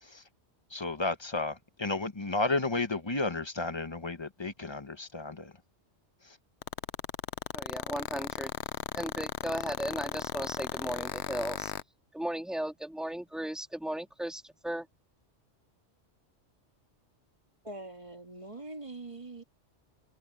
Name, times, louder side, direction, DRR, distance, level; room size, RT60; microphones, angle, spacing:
voice 1, 0.7-5.5 6.2-6.4, left 3 dB, 25° left, 1.1 m, -32 dB
sound 1, 6.6-11.8, left 12 dB, 70° left, 0.8 m, -35 dB
voice 2, 7.5-8.5 8.9-11.7 12.1-14.9, right 1 dB, ahead, 2.6 m, -36 dB
voice 3, 17.6-19.4, right 2 dB, 25° right, 2.0 m, -43 dB
omnidirectional pair, 1.2 m